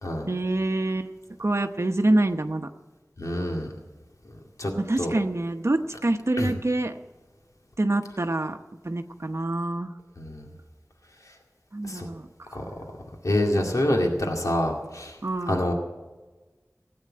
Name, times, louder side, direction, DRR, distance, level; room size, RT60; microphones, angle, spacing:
voice 1, 0.3-1.1 1.4-2.7 4.7-7.0 7.8-8.6 8.8-9.9 11.7-12.3 13.6-13.7 15.2-15.6, right 2 dB, 55° right, 7 dB, 0.9 m, -26 dB
voice 2, 3.2-3.7 4.6-4.7 5.0-5.2 6.4-6.5 10.2-10.5 11.8-12.1 12.5-12.6 13.2-15.2 15.5-15.7, left 1 dB, 90° left, 1 dB, 2.1 m, -26 dB
16.5 x 8.8 x 8.7 m, 1.2 s
wide cardioid pair, 45°, 5 cm